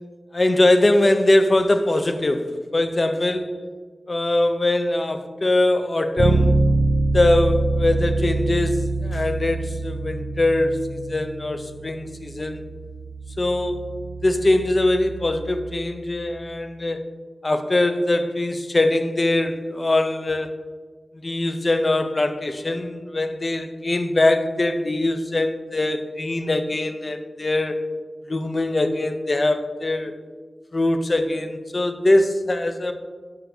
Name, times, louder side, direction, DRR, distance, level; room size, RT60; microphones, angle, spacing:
voice 1, 0.3-2.5 2.7-3.5 4.1-6.6 7.1-12.6 13.4-13.8 14.2-17.0 17.4-20.6 21.2-27.9 28.3-30.1 30.7-32.9, left 2 dB, 45° left, 8 dB, 0.3 m, -22 dB
Bass guitar, 6.2-16.0, right 2 dB, 60° right, 0.5 m, -25 dB
4.7 x 4.4 x 2.6 m, 1.5 s
wide cardioid pair, 65°, 0 cm